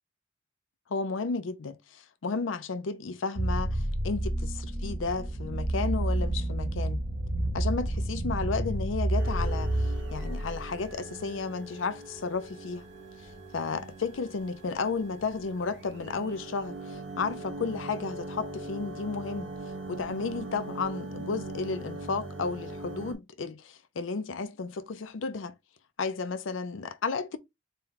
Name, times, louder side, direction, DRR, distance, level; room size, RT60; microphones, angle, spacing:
voice 1, 0.9-7.0 7.5-12.9 13.5-19.5 19.9-25.5 26.0-27.4, left 4 dB, 80° left, 0.5 m, -33 dB
sound 1, 3.4-10.9, right 1 dB, 35° right, 0.7 m, -30 dB
sound 2, 9.2-23.1, right 1 dB, 65° right, 1.2 m, -41 dB
4.3 x 2.2 x 3.9 m
head